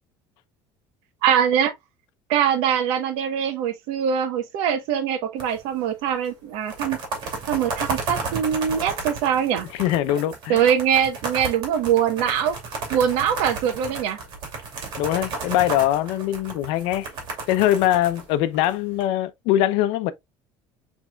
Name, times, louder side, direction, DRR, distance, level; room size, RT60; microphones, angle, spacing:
voice 1, 1.2-1.7 2.3-7.0 7.5-9.7 10.5-12.6 12.9-14.2, right 8 dB, 80° right, 1.1 m, -22 dB
sound 1, 5.4-5.8 6.1-6.2 6.5-19.0, right 3 dB, 50° right, 2.5 m, -33 dB
voice 2, 9.7-10.7 15.0-17.1 17.5-20.1, left 13 dB, 75° left, 0.6 m, -22 dB
6.2 x 3.5 x 2.3 m
cardioid pair, 145°, 10 cm